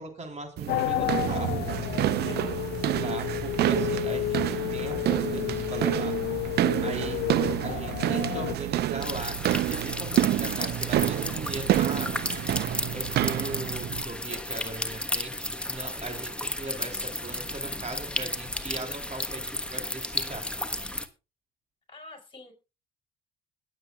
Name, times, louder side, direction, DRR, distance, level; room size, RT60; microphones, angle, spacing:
voice 1, 0.0-1.7 3.0-6.2 6.8-7.2 7.6-12.1 12.9-20.5, right 2 dB, 40° right, 4 dB, 3.9 m, -39 dB
sound 1, 0.6-14.0, right 13 dB, 65° right, 0.7 m, -28 dB
sound 2, 0.7-8.5, left 17 dB, 70° left, 0.5 m, -31 dB
sound 3, 9.0-21.1, left 1 dB, 5° left, 1.3 m, -33 dB
voice 2, 21.9-22.5, left 2 dB, 30° left, 4 dB, 4.9 m, -46 dB
21.5 x 7.9 x 2.4 m, 0.29 s
hypercardioid pair, 60°, 18 cm